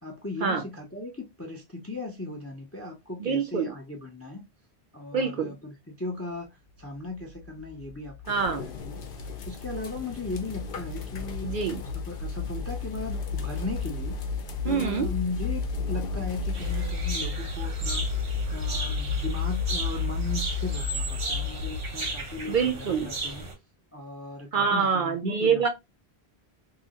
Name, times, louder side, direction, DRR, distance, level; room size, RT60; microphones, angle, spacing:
voice 1, 0.0-4.5 4.9-6.5 6.8-8.2 8.6-11.6 12.1-14.2 14.6-18.1 18.5-23.5 23.9-25.7, left 2 dB, 20° left, 0.4 m, -37 dB
voice 2, 3.2-3.7 5.1-5.5 8.3-8.6 11.4-11.8 14.6-15.1 22.5-23.1 24.5-25.7, right 6 dB, 60° right, 0.7 m, -25 dB
sound 1, 7.1-22.4, left 4 dB, 90° left, 0.9 m, -32 dB
sound 2, 8.3-16.9, left 6 dB, 60° left, 0.7 m, -43 dB
sound 3, 16.5-23.5, right 2 dB, 90° right, 1.3 m, -35 dB
2.8 x 2.6 x 2.8 m
omnidirectional pair, 1.1 m